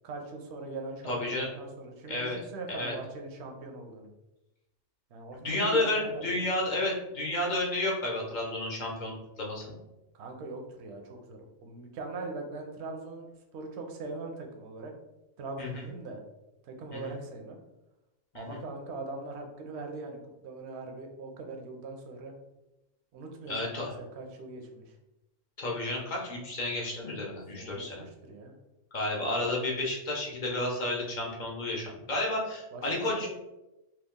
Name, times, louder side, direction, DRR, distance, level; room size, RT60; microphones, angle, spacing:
voice 1, 0.0-4.1 5.1-6.4 10.1-13.2 13.5-14.9 15.4-16.2 16.6-17.6 18.3-20.2 20.4-22.3 23.1-25.0 27.6-28.5 32.7-33.3, right 3 dB, 65° right, 3 dB, 0.8 m, -41 dB
voice 2, 1.1-1.5 2.1-2.4 2.7-2.9 5.4-9.7 15.6-15.9 16.9-17.2 18.3-18.6 23.5-23.9 25.6-28.0 28.9-33.3, left 2 dB, 45° left, -2 dB, 0.7 m, -31 dB
3.0 x 2.3 x 3.5 m, 0.97 s
omnidirectional pair, 1.3 m